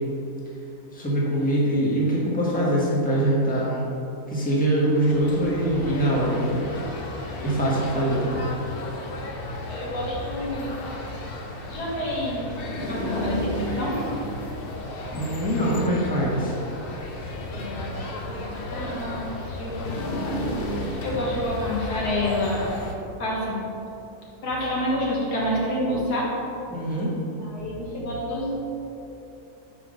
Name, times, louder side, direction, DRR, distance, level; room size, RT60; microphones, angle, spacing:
voice 1, 0.9-3.8 4.3-6.6 7.4-8.5 15.1-16.6 26.7-27.1, right 1 dB, 5° left, -6 dB, 1.3 m, -23 dB
sound 1, 4.7-22.9, left 1 dB, 50° left, 0.7 m, -33 dB
voice 2, 9.6-10.7 11.7-12.6 12.9-14.0 17.5-20.5 20.8-22.7 23.2-23.6 24.4-26.3 27.4-28.5, left 1 dB, 80° left, -5 dB, 2.1 m, -29 dB
5.9 x 5.0 x 6.4 m, 2.9 s
omnidirectional pair, 1.7 m